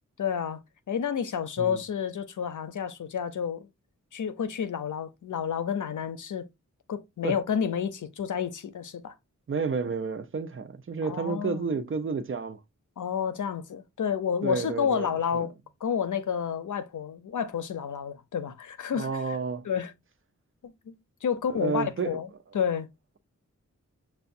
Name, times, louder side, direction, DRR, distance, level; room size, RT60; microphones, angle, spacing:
voice 1, 0.2-0.6 0.9-3.7 4.1-6.5 6.9-9.1 11.0-11.6 13.0-15.5 15.8-19.1 19.6-19.9 20.9-21.0 21.2-22.3 22.5-22.9, left 7 dB, 80° left, 0.7 m, -30 dB
voice 2, 9.5-12.6 14.4-15.5 18.9-19.7 21.5-22.2, right 5 dB, 45° right, 0.6 m, -31 dB
6.7 x 2.3 x 2.6 m
wide cardioid pair, 70°, 30 cm